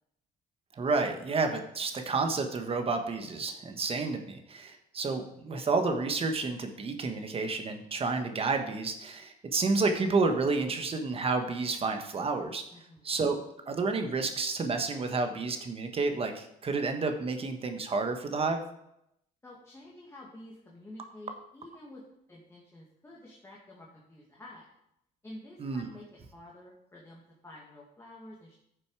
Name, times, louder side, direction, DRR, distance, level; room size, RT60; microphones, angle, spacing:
voice 1, 0.7-12.6 13.0-13.4 13.7-18.6 25.6-25.8, right 3 dB, 35° right, 5 dB, 1.4 m, -30 dB
voice 2, 12.7-13.2 19.4-24.8 25.2-28.5, left 1 dB, 15° left, -3 dB, 2.0 m, -50 dB
10.5 x 6.8 x 4.8 m, 0.78 s
cardioid pair, 110°, 17 cm